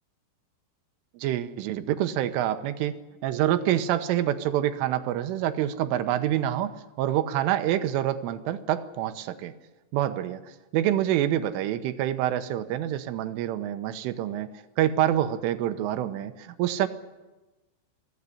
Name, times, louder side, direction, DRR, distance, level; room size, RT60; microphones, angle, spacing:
voice 1, 1.2-2.9 3.2-9.5 9.9-10.4 10.7-14.5 14.8-16.9, right 12 dB, 85° right, 9 dB, 3.5 m, -26 dB
23.5 x 16.0 x 9.9 m, 1.1 s
omnidirectional pair, 5.6 m